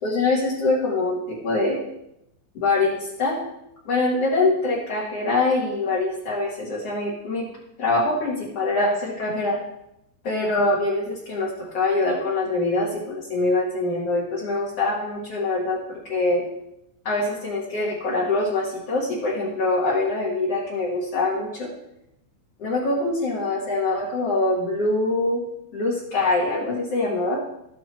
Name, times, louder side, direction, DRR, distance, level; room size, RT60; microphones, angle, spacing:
voice 1, 0.0-1.8 2.5-3.4 3.9-7.4 7.8-9.6 10.2-16.4 17.0-21.7 22.6-25.4 25.7-27.4, left 2 dB, 40° left, -6 dB, 2.6 m, -24 dB
14.0 x 8.6 x 4.6 m, 0.81 s
omnidirectional pair, 5.3 m